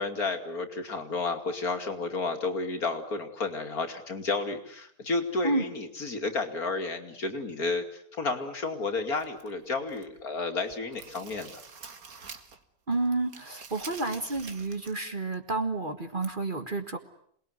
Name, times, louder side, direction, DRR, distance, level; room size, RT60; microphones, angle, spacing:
voice 1, 0.0-11.6, left 3 dB, 60° left, 5 dB, 3.0 m, -31 dB
sound 1, 9.2-10.2 10.6-12.6 12.9-15.0 15.3-15.4 16.2-16.3, right 5 dB, 60° right, 2.2 m, -47 dB
voice 2, 12.9-17.0, right 2 dB, 30° right, 7 dB, 1.8 m, -30 dB
27.5 x 20.5 x 9.7 m, 0.67 s
omnidirectional pair, 1.8 m